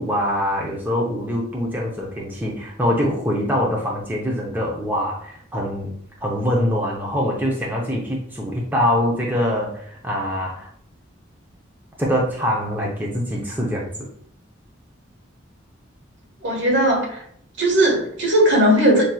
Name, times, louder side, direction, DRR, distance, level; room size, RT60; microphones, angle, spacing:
voice 1, 0.0-5.9 6.2-10.7 12.0-14.1, equal, 10° right, 0.6 m, -24 dB
voice 2, 16.4-17.2 17.6-19.1, right 1 dB, 70° right, 1.3 m, -17 dB
5.1 x 2.9 x 2.2 m
head